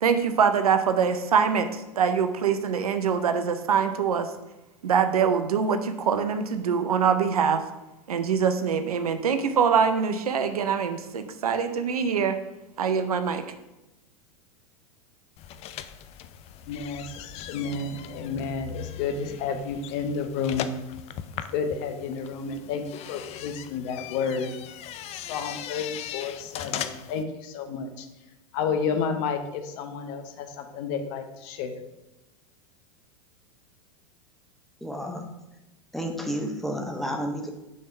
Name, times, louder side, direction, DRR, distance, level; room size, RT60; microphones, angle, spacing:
voice 1, 0.0-4.3 4.8-7.6 8.1-12.4 12.8-13.4, right 6 dB, 85° right, 9 dB, 0.6 m, -24 dB
sound 1, 15.4-27.2, left 10 dB, 35° left, 0.4 m, -39 dB
voice 2, 16.7-20.7 21.5-24.5 25.1-28.1 28.5-31.8, left 5 dB, 50° left, 7 dB, 0.8 m, -31 dB
voice 3, 34.8-35.2 35.9-37.5, equal, ahead, 2 dB, 1.0 m, -31 dB
6.4 x 3.5 x 5.6 m, 0.97 s
hypercardioid pair, 100°, 19 cm